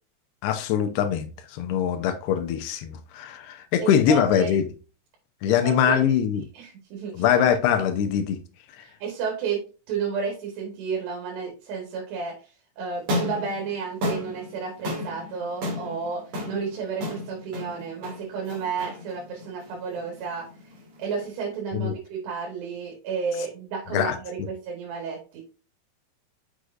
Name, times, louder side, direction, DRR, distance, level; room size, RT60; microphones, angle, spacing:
voice 1, 0.4-1.3 1.5-4.6 5.4-6.4 7.1-8.4 21.7-21.9 23.9-24.2, left 8 dB, 80° left, 2.9 m, -22 dB
voice 2, 3.8-4.6 5.5-6.0 6.6-7.3 8.8-12.4 12.8-20.5 21.0-25.4, right 5 dB, 85° right, 3.7 m, -32 dB
sound 1, 12.9-21.2, left 1 dB, 45° right, 2.7 m, -34 dB
6.9 x 6.4 x 2.5 m
omnidirectional pair, 4.7 m